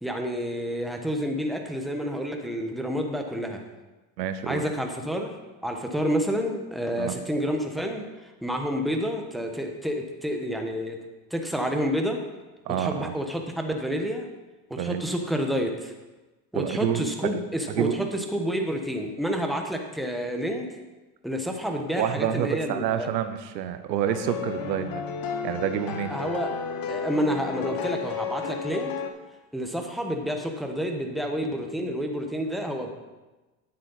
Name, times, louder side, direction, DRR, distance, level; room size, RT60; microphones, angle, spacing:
voice 1, 0.0-3.6 4.5-5.3 5.6-11.0 11.3-12.2 12.8-14.3 14.7-15.9 16.5-20.6 21.2-23.1 26.1-26.5 26.9-28.9 29.5-32.9, equal, ahead, 3 dB, 1.2 m, -29 dB
voice 2, 4.2-4.6 7.0-7.2 12.7-13.1 14.8-15.0 16.5-17.0 17.7-18.0 22.0-25.0 25.4-26.1, right 10 dB, 90° right, 9 dB, 0.8 m, -28 dB
sound 1, 24.1-29.1, left 6 dB, 45° left, 1.1 m, -32 dB
9.8 x 7.6 x 4.1 m, 1.1 s
hypercardioid pair, 95°, 49 cm